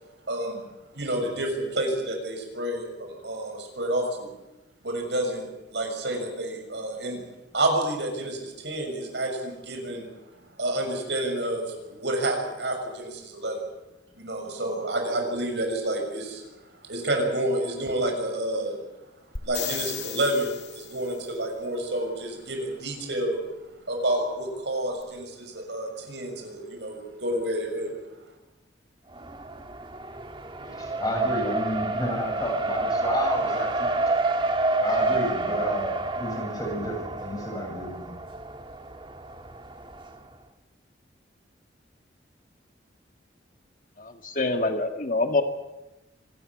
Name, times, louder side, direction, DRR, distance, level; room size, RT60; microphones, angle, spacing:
voice 1, 0.3-0.6 0.9-4.3 4.8-7.2 7.5-10.1 10.6-13.6 14.2-16.4 16.9-18.8 19.4-23.4 23.9-27.9, right 1 dB, 70° right, 3 dB, 6.5 m, -29 dB
sound 1, 19.4-21.2 25.0-25.1, left 9 dB, 70° left, 2.1 m, -35 dB
Race car auto racing, 29.1-40.1, right 2 dB, 25° right, 1.7 m, -29 dB
voice 2, 30.6-34.0 34.8-38.1, equal, 20° left, 1 dB, 7.2 m, -31 dB
voice 3, 44.0-45.4, left 2 dB, 45° left, 6 dB, 1.7 m, -26 dB
26.0 x 13.5 x 9.7 m, 1.0 s
head